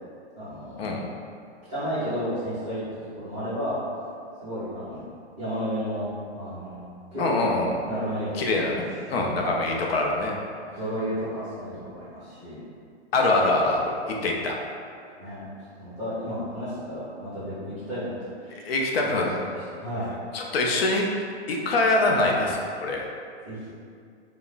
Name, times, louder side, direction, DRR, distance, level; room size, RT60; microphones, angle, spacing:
voice 1, 0.4-1.0 1.7-3.8 4.4-5.0 5.4-6.9 7.1-7.4 7.9-8.8 9.1-9.6 10.7-12.6 14.0-14.2 15.2-15.5 15.8-20.1 22.0-22.5 23.4-23.7, equal, 5° right, -24 dB, 0.4 m, -33 dB
voice 2, 7.2-7.8 8.4-8.8 9.1-10.4 13.1-14.5 18.7-19.3 20.3-21.0 21.5-23.0, left 2 dB, 65° left, 0 dB, 0.5 m, -24 dB
3.5 x 2.0 x 2.3 m, 2.3 s
hypercardioid pair, 170°, 33 cm